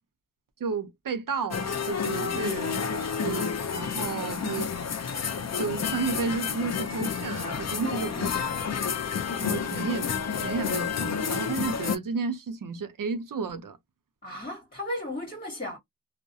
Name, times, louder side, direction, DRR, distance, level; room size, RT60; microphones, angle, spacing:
voice 1, 0.6-4.7 5.6-8.5 9.4-13.8, right 5 dB, 80° right, 0.6 m, -32 dB
sound 1, 1.5-12.0, left 6 dB, 55° left, 0.4 m, -30 dB
voice 2, 2.2-2.6 7.8-8.5 14.2-15.8, left 1 dB, 30° left, 1.2 m, -36 dB
2.3 x 2.1 x 2.6 m
wide cardioid pair, 45°, 32 cm